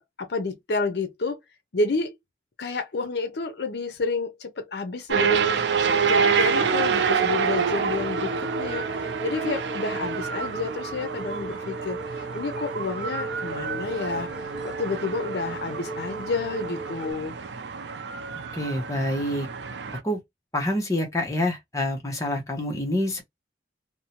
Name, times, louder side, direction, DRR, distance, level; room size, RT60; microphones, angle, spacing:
voice 1, 0.0-1.4 1.7-2.2 2.6-5.6 6.1-17.4, left 3 dB, 70° left, 0.5 m, -30 dB
sound 1, 5.1-20.0, right 6 dB, 85° right, 0.4 m, -28 dB
sound 2, 6.9-17.1, right 2 dB, 5° right, 0.3 m, -37 dB
voice 2, 18.5-19.5 20.0-20.2 20.5-23.2, left 1 dB, 20° left, 0.7 m, -27 dB
2.6 x 2.1 x 2.8 m
head